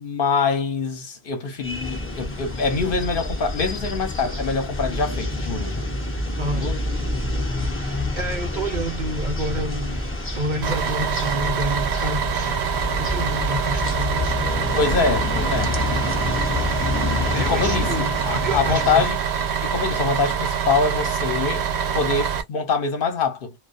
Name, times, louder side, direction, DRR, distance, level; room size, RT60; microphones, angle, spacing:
voice 1, 0.0-5.9 6.5-6.8 14.7-15.7 17.4-19.2 19.6-21.6 21.9-23.5, left 4 dB, 60° left, 0.9 m, -24 dB
sound 1, 1.6-19.1, left 2 dB, 15° left, 0.5 m, -28 dB
voice 2, 7.7-12.5 13.0-14.5 17.3-19.1, right 1 dB, 50° right, 0.8 m, -29 dB
Bus, 10.6-22.4, right 7 dB, 80° right, 0.9 m, -25 dB
2.3 x 2.2 x 2.5 m
omnidirectional pair, 1.1 m